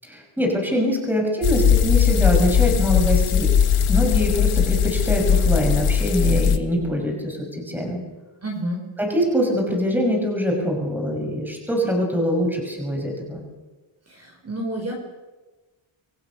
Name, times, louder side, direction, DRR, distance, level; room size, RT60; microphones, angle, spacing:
voice 1, 0.0-3.6 3.9-8.0 9.0-13.4, equal, 5° right, 0 dB, 5.9 m, -23 dB
sound 1, 1.4-6.6, left 7 dB, 80° left, 1.6 m, -19 dB
voice 2, 8.4-8.8 14.1-14.9, right 1 dB, 30° right, 1 dB, 4.9 m, -29 dB
27.5 x 22.5 x 6.4 m, 1.2 s
wide cardioid pair, 170°, 49 cm